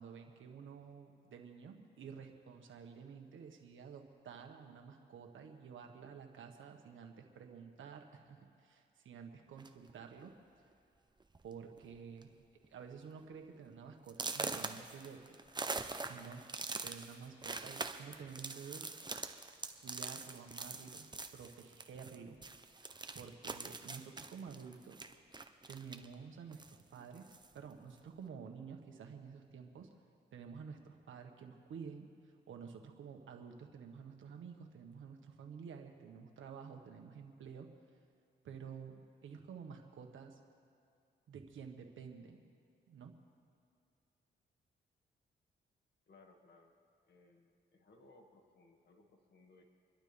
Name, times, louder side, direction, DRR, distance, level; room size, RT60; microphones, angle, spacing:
voice 1, 0.0-10.4 11.4-12.3 12.7-15.4 16.1-16.5 16.8-18.9 19.8-22.4 22.8-25.1 25.7-29.9 30.3-32.1 32.5-37.7 38.4-40.4 41.3-42.4 42.9-43.1, right 6 dB, 80° right, 4 dB, 1.6 m, -51 dB
sound 1, 9.6-9.9 10.7-10.8 11.2-11.5 11.8-12.2 12.6-12.7 13.2-13.3 14.1-22.2 22.4-26.1 26.5-27.5, right 3 dB, 20° right, 0.9 m, -43 dB
voice 2, 46.1-46.8 47.1-49.6, left 2 dB, 60° left, 2 dB, 2.2 m, -64 dB
27.0 x 12.0 x 3.5 m, 2.5 s
cardioid pair, 75°, 20 cm